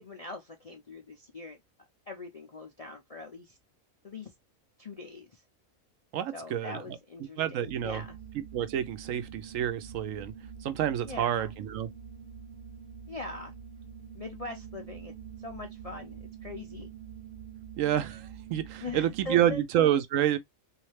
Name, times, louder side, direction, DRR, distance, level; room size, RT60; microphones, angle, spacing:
voice 1, 0.0-1.6 2.1-3.6 4.0-4.3 4.8-5.4 6.3-8.2 11.0-11.5 13.1-13.5 14.1-16.9 18.8-19.6, left 3 dB, 50° left, 0.4 m, -42 dB
voice 2, 6.1-7.0 7.4-8.0 8.5-10.3 10.6-11.9 17.8-20.4, right 11 dB, 75° right, 0.9 m, -28 dB
sound 1, 7.6-19.6, right 7 dB, 55° right, 0.6 m, -46 dB
3.1 x 2.8 x 3.1 m
omnidirectional pair, 1.4 m